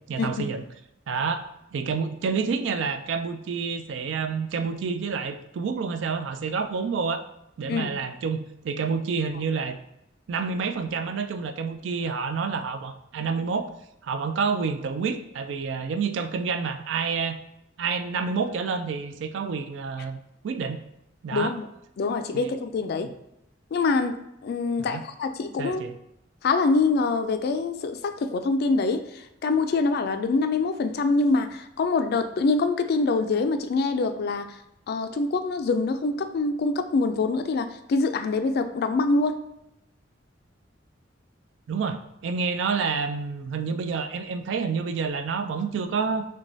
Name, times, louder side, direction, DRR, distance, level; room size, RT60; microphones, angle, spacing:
voice 1, 0.1-0.6 1.1-1.5 1.7-7.2 7.6-9.8 10.3-13.7 14.0-17.4 17.8-20.2 20.4-20.8 21.2-21.5 22.3-22.5 24.8-25.0 25.6-25.9 41.7-46.3, right 5 dB, 70° right, 9 dB, 0.3 m, -28 dB
voice 2, 21.3-21.7 22.0-23.1 23.7-24.2 24.4-25.8 26.4-34.6 34.9-39.4, left 3 dB, 55° left, 8 dB, 0.3 m, -25 dB
6.0 x 2.2 x 2.6 m, 0.82 s
head